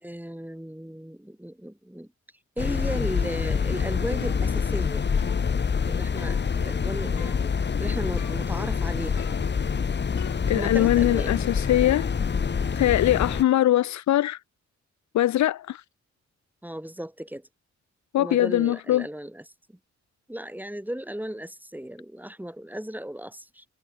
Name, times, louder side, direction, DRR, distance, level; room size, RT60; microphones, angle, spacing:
voice 1, 0.0-2.1 2.6-5.0 5.9-9.5 10.5-11.4 13.0-13.3 16.6-17.5 18.2-19.8 20.3-23.7, right 1 dB, 5° right, 4.7 m, -36 dB
sound 1, 2.6-13.4, left 6 dB, 35° left, 0.8 m, -26 dB
sound 2, 4.2-4.9 5.2-6.9 7.2-7.7 8.2-8.8 9.2-9.8 10.2-11.9, left 10 dB, 90° left, 6.9 m, -45 dB
voice 2, 10.5-12.1 12.8-14.4 15.1-15.8 18.1-19.1, left 13 dB, 70° left, 0.5 m, -22 dB
cardioid pair, 55°, 30 cm